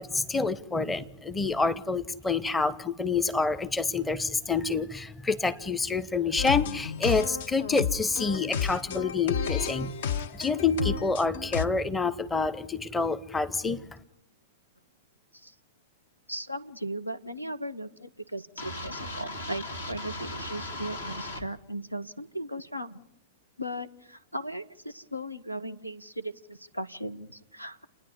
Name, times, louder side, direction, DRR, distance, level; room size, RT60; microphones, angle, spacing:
voice 1, 0.0-10.0 10.3-13.8, left 4 dB, 10° left, 0.8 m, -27 dB
sound 1, 6.4-11.7, left 8 dB, 55° left, 0.7 m, -32 dB
voice 2, 16.3-23.0 23.6-27.9, equal, 90° left, 1.0 m, -37 dB
sound 2, 18.6-21.4, left 1 dB, 70° left, 2.4 m, -37 dB
29.5 x 10.0 x 9.7 m
figure-of-eight pair, 100°, 0 cm